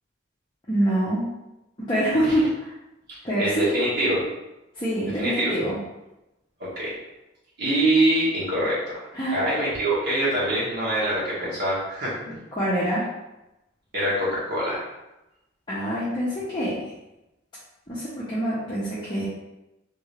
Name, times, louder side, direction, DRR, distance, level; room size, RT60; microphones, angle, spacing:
voice 1, 0.7-1.3 1.9-2.5 3.2-3.7 4.8-5.8 9.1-9.4 12.6-13.0 15.7-16.8 17.9-19.2, equal, 25° left, -10 dB, 0.8 m, -25 dB
voice 2, 3.1-4.3 5.2-5.5 6.6-7.0 7.6-12.3 13.9-14.9, right 1 dB, 55° right, -8 dB, 1.4 m, -24 dB
3.6 x 2.7 x 3.2 m, 0.94 s
head